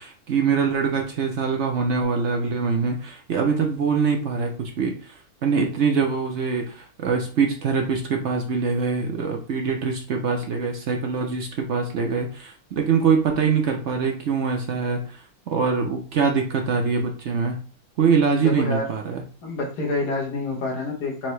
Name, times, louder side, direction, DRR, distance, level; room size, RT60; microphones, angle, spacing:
voice 1, 0.0-17.6 18.0-19.2, right 5 dB, 60° right, 2 dB, 0.8 m, -24 dB
voice 2, 18.4-18.9 19.4-21.3, left 3 dB, 90° left, 1 dB, 1.7 m, -27 dB
4.4 x 2.8 x 3.1 m, 0.37 s
omnidirectional pair, 1.7 m